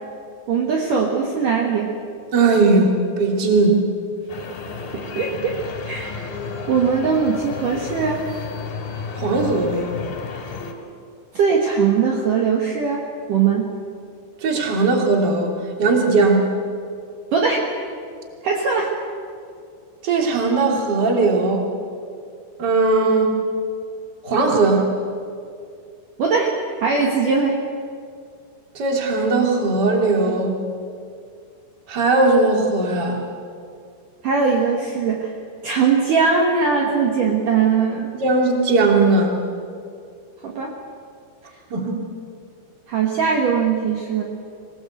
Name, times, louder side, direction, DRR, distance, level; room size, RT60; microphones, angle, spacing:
voice 1, 0.5-1.9 5.2-6.2 6.7-8.2 11.3-13.7 17.3-17.7 18.4-18.9 26.2-27.6 34.2-35.3 35.6-38.1 40.4-40.7 42.9-44.2, right 5 dB, 55° right, 0 dB, 2.7 m, -20 dB
voice 2, 2.3-3.8 9.2-9.9 14.4-15.5 15.8-16.5 20.0-21.7 22.6-23.4 24.2-24.8 28.7-30.6 31.9-33.2 38.2-39.3 41.7-42.1, right 3 dB, 25° right, 1 dB, 2.8 m, -18 dB
sound 1, 4.3-10.7, left 5 dB, 60° left, 3.8 m, -32 dB
24.5 x 19.0 x 8.1 m, 2.3 s
omnidirectional pair, 5.2 m